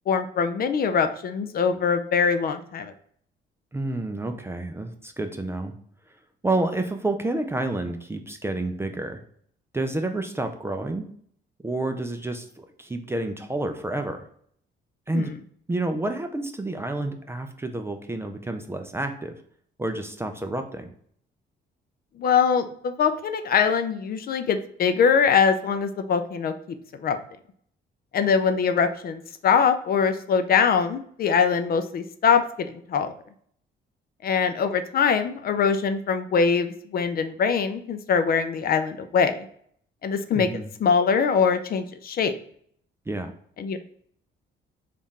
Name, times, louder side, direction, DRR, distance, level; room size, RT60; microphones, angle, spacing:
voice 1, 0.1-2.9 15.1-15.3 22.2-26.5 27.0-27.2 28.1-33.1 34.2-39.5 40.0-40.5 40.8-42.3 43.6-43.8, left 6 dB, 50° left, 9 dB, 0.4 m, -23 dB
voice 2, 3.7-5.7 6.4-9.2 9.7-11.1 11.6-14.2 15.1-15.3 15.7-19.3 19.8-20.9 40.3-40.7 43.1-43.3, right 2 dB, 10° right, 6 dB, 0.4 m, -29 dB
3.6 x 2.4 x 4.0 m, 0.63 s
cardioid pair, 120°, 20 cm